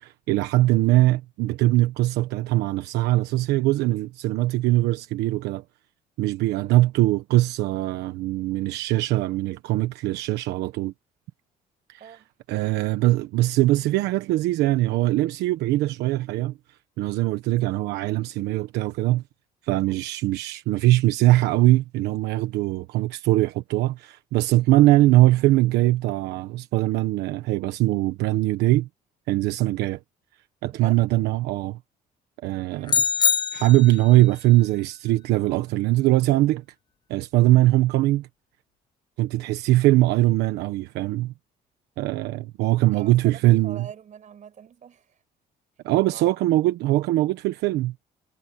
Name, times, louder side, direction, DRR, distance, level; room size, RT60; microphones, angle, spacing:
voice 1, 0.0-5.6 6.2-10.9 11.9-12.2 12.5-16.6 17.0-19.2 19.6-28.9 29.3-30.0 30.6-31.8 32.4-33.0 33.5-36.6 37.1-38.3 39.2-41.3 42.0-43.9 45.8-47.9, right 17 dB, 90° right, 1.2 m, -21 dB
voice 2, 30.7-31.0 32.7-33.0 39.3-39.5 42.9-45.0 46.1-46.3, right 8 dB, 45° right, 5.7 m, -43 dB
sound 1, 32.9-34.2, left 6 dB, 25° left, 0.4 m, -23 dB
cardioid pair, 110°, 17 cm